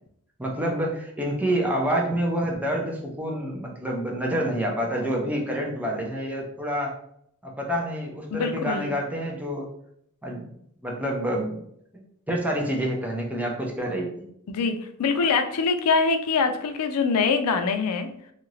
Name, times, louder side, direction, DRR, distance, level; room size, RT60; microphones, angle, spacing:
voice 1, 0.4-6.9 7.4-9.7 10.2-10.5 10.8-11.6 11.9-14.3, equal, 5° right, -1 dB, 0.5 m, -28 dB
voice 2, 8.3-8.9 14.5-18.1, left 4 dB, 85° left, 7 dB, 0.4 m, -24 dB
2.7 x 2.5 x 3.1 m, 0.70 s
head